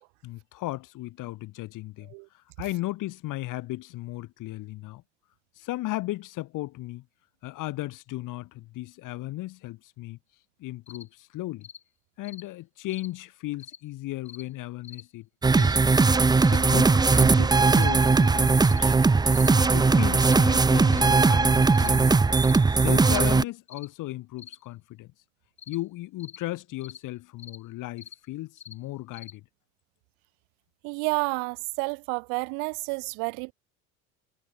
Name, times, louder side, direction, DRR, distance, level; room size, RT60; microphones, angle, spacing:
voice 1, 0.2-5.0 5.6-7.1 7.4-10.2 10.6-11.7 12.2-15.3 15.6-15.8 16.1-19.0 19.5-22.2 22.7-25.1 25.7-29.4, left 17 dB, 60° left, 5.3 m, -36 dB
sound 1, 10.9-11.1 11.6-11.8 12.2-12.5 12.9-13.1 13.6-13.8 14.3-14.5 14.8-15.1 15.6-15.8 16.4-16.6 17.1-17.3 17.7-18.0 18.6-18.8 19.3-19.5 20.2-20.4 20.9-21.1 21.7-21.9 22.4-22.6 23.0-23.2 23.7-23.9 24.4-24.6 25.6-25.8 26.2-26.4 26.8-27.0 27.4-27.6 28.0-28.2 28.6-28.8 29.1-29.4, left 7 dB, 35° left, 4.2 m, -46 dB
sound 2, 15.4-23.4, right 4 dB, 10° right, 0.7 m, -19 dB
voice 2, 30.8-33.5, right 39 dB, 70° right, 1.7 m, -30 dB
supercardioid pair, 90°, 36 cm